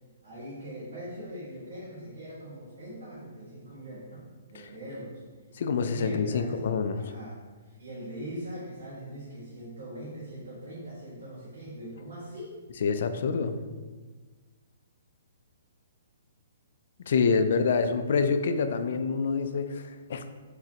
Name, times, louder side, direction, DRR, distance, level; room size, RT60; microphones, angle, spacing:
voice 1, 0.2-4.2 4.5-5.2 5.9-6.6 6.9-7.4 7.6-12.6 17.5-17.7, right 1 dB, 85° right, -8 dB, 1.5 m, -41 dB
voice 2, 5.5-7.0 12.8-13.6 17.0-20.3, left 5 dB, 50° left, 8 dB, 0.3 m, -27 dB
4.9 x 3.3 x 2.8 m, 1.3 s
hypercardioid pair, 175°, 0 cm